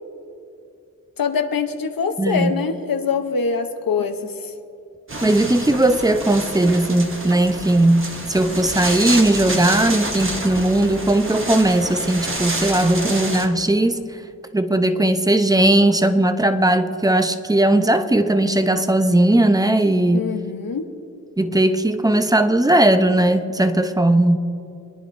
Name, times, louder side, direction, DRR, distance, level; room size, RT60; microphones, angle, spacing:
voice 1, 1.2-4.5 20.1-20.9, left 5 dB, 80° left, 6 dB, 0.8 m, -24 dB
voice 2, 2.2-2.5 5.2-14.0 14.5-20.3 21.4-24.4, right 1 dB, 10° right, 9 dB, 0.6 m, -18 dB
sound 1, 5.1-13.5, right 2 dB, 35° right, 1.3 m, -28 dB
26.5 x 10.0 x 2.6 m, 2.6 s
cardioid pair, 55°, 34 cm